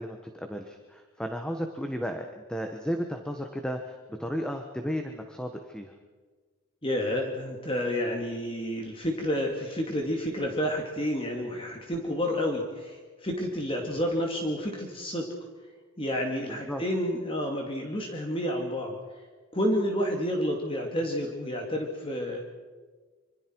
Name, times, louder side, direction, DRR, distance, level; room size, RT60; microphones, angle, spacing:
voice 1, 0.0-5.9 16.5-16.8, equal, 5° left, 4 dB, 1.3 m, -34 dB
voice 2, 6.8-15.3 16.0-19.0 19.5-22.4, equal, 25° left, 1 dB, 2.4 m, -30 dB
26.0 x 25.5 x 4.7 m, 1.4 s
head